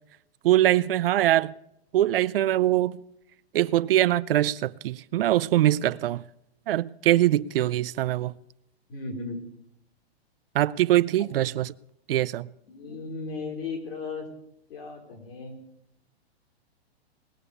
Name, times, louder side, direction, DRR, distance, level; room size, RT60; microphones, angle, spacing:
voice 1, 0.4-1.5 1.9-3.0 3.5-6.2 6.7-8.3 10.5-11.7 12.1-12.5, right 14 dB, 60° right, 0.4 m, -23 dB
voice 2, 8.9-9.4 11.2-11.3 12.7-14.3 14.7-15.6, left 4 dB, 60° left, 4.1 m, -36 dB
19.5 x 6.9 x 6.9 m
hypercardioid pair, 155°, 32 cm